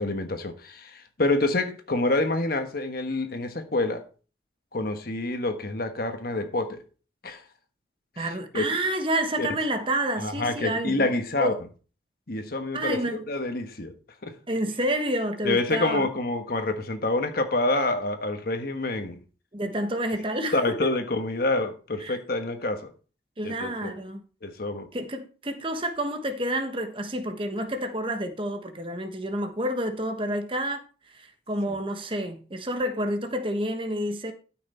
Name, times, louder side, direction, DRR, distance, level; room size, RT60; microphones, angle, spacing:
voice 1, 0.0-4.1 4.7-6.8 7.2-7.4 8.2-8.7 9.4-9.5 10.2-11.5 12.3-13.9 14.2-14.4 15.4-19.2 20.5-22.9 23.4-23.9 24.4-24.9 31.7-31.8, left 2 dB, 55° left, 1.3 m, -27 dB
voice 2, 8.2-11.1 11.4-11.5 12.7-13.2 14.5-16.1 19.5-20.6 22.0-22.2 23.4-24.2 24.9-34.3, right 1 dB, 30° right, 1.3 m, -29 dB
13.0 x 6.1 x 4.4 m
head